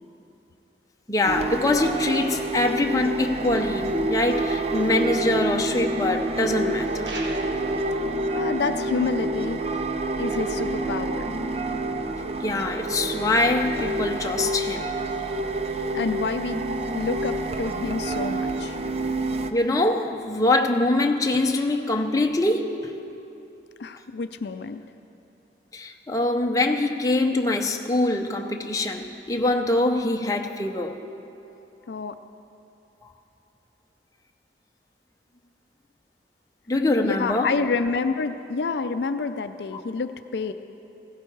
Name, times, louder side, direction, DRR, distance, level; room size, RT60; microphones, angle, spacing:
voice 1, 1.1-7.1 12.4-14.9 19.5-22.9 25.7-31.0 36.7-37.5 39.7-39.8, left 2 dB, 20° left, 3 dB, 0.7 m, -24 dB
sound 1, 1.3-19.5, right 2 dB, 35° right, 0.6 m, -28 dB
sound 2, 7.0-7.8, right 2 dB, 80° right, 1.4 m, -37 dB
voice 2, 8.3-9.6 10.2-11.3 15.9-16.6 16.9-18.8 23.8-24.8 31.9-32.1 37.0-40.5, left 4 dB, 70° left, 9 dB, 0.5 m, -28 dB
16.0 x 16.0 x 4.7 m, 2.8 s
head